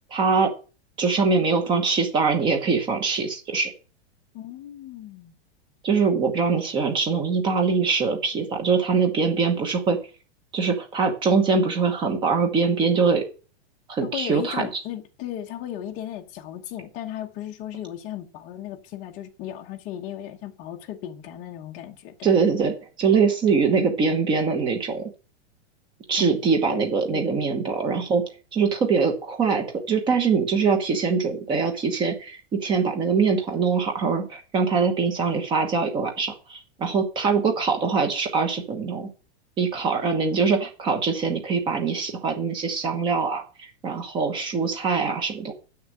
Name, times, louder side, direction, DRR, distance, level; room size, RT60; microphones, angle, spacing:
voice 1, 0.1-0.5 1.0-3.7 5.8-10.0 10.5-13.2 13.9-14.7 22.2-25.1 26.1-28.2 28.5-39.1 39.6-45.5, right 5 dB, 15° right, 1.1 m, -23 dB
voice 2, 4.3-5.3 14.0-22.3 26.2-27.4, left 11 dB, 20° left, 1.0 m, -36 dB
7.6 x 6.6 x 7.6 m
supercardioid pair, 175°, 34 cm